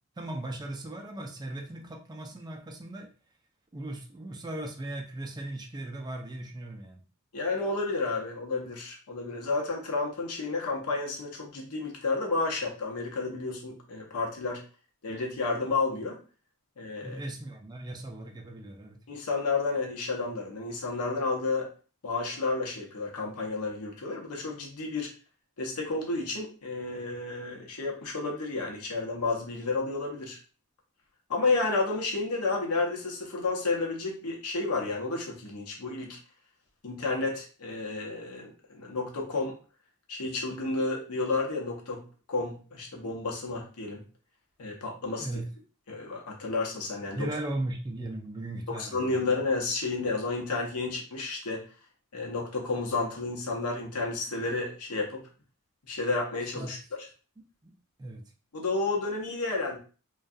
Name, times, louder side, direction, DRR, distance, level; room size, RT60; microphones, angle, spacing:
voice 1, 0.2-3.1 3.7-7.0 17.0-19.0 45.2-45.5 47.1-49.4 56.6-56.7 57.6-57.7 58.0-58.2, right 1 dB, 20° right, 2 dB, 0.3 m, -37 dB
voice 2, 7.3-14.6 15.0-16.2 16.8-17.2 19.1-21.7 22.0-25.1 25.6-30.4 31.3-36.2 36.8-39.5 40.1-44.0 44.6-45.3 45.9-47.3 48.7-51.6 52.1-55.2 55.9-56.8 58.5-59.8, left 3 dB, 90° left, 0 dB, 0.7 m, -31 dB
2.6 x 2.2 x 2.3 m, 0.38 s
head